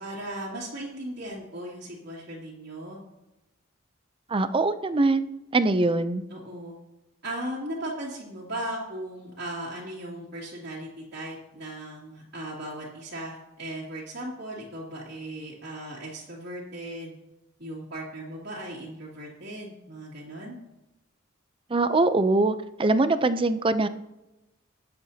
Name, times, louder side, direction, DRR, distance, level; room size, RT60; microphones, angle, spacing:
voice 1, 0.0-3.0 6.3-6.8 7.2-17.1 17.6-20.5, right 1 dB, 55° right, -8 dB, 2.5 m, -37 dB
voice 2, 4.3-6.2 21.7-23.9, right 2 dB, 25° right, 12 dB, 0.5 m, -23 dB
20.5 x 7.8 x 2.8 m, 0.96 s
head